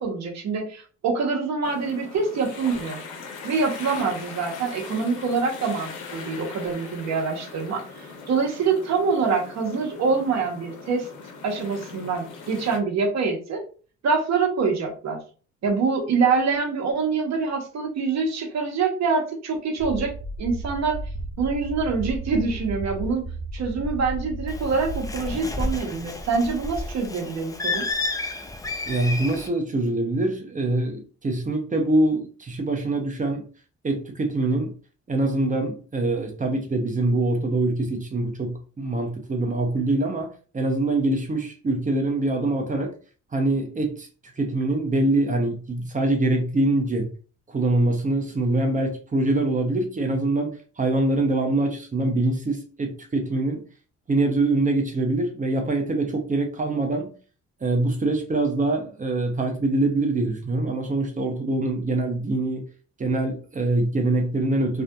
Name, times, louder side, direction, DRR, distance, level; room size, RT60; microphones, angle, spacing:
voice 1, 0.0-3.0 3.4-11.1 11.4-13.6 14.0-15.2 15.6-21.0 21.4-23.3 23.5-27.9, right 4 dB, 60° right, 0.9 m, -25 dB
sound 1, 1.6-12.8, left 4 dB, 80° left, 0.7 m, -40 dB
sound 2, 19.8-25.3, right 2 dB, 45° left, 0.7 m, -34 dB
Bird, 24.5-29.5, left 2 dB, 10° left, 0.3 m, -31 dB
voice 2, 28.9-33.5 33.8-34.7 35.1-40.3 40.5-42.9 43.3-44.1 44.4-47.1 47.5-53.6 54.1-57.1 57.6-62.6 63.0-64.8, right 2 dB, 25° right, 0.6 m, -24 dB
2.6 x 2.4 x 2.2 m
cardioid pair, 90°, 30 cm